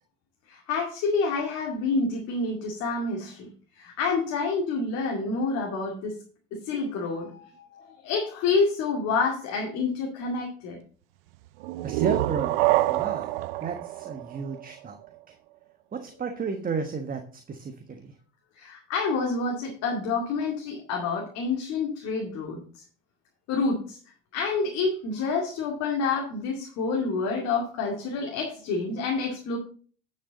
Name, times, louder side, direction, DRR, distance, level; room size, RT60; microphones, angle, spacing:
voice 1, 0.5-3.5 3.8-6.2 6.5-10.8 18.5-22.6 23.5-24.0 24.3-29.6, left 4 dB, 60° left, -1 dB, 2.3 m, -28 dB
sound 1, 11.6-15.2, right 17 dB, 70° right, 0.5 m, -27 dB
voice 2, 11.8-15.0 15.3-15.4 15.9-18.1, right 5 dB, 30° right, 6 dB, 1.3 m, -33 dB
10.0 x 6.7 x 3.9 m, 0.42 s
hypercardioid pair, 65°, 30 cm